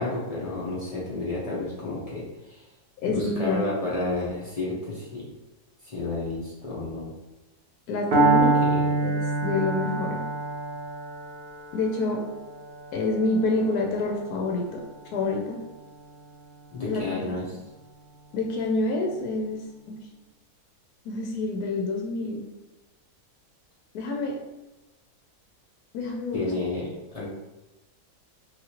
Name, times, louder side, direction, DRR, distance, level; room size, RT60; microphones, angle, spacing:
voice 1, 0.0-2.7 3.1-5.2 5.8-7.1 8.3-9.0 16.7-17.4 26.3-27.3, left 2 dB, 60° left, -7 dB, 0.3 m, -31 dB
voice 2, 3.0-3.6 7.9-8.6 9.0-10.2 11.7-12.2 12.9-14.8 15.1-15.6 16.9-17.2 18.3-19.6 19.9-20.0 21.1-22.4 23.9-24.4 25.9-26.5, left 2 dB, 80° left, 1 dB, 1.1 m, -27 dB
Piano, 8.1-16.0, right 3 dB, 60° right, 0.5 m, -27 dB
3.0 x 2.5 x 2.8 m, 1.0 s
omnidirectional pair, 1.6 m